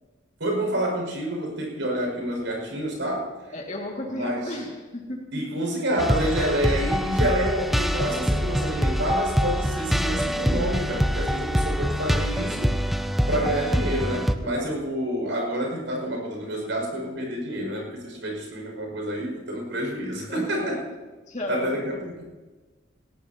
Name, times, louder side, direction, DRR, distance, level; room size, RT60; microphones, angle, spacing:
voice 1, 0.4-3.3 4.0-4.5 5.3-12.7 13.3-20.8 21.5-22.2, equal, 75° right, 0 dB, 5.8 m, -28 dB
voice 2, 3.5-5.2 13.2-13.5 14.3-14.5 20.3-20.8 21.3-21.8, left 1 dB, 40° left, 0 dB, 2.2 m, -34 dB
sound 1, 6.0-14.4, equal, ahead, 0.5 m, -25 dB
18.5 x 17.5 x 2.9 m, 1.3 s
head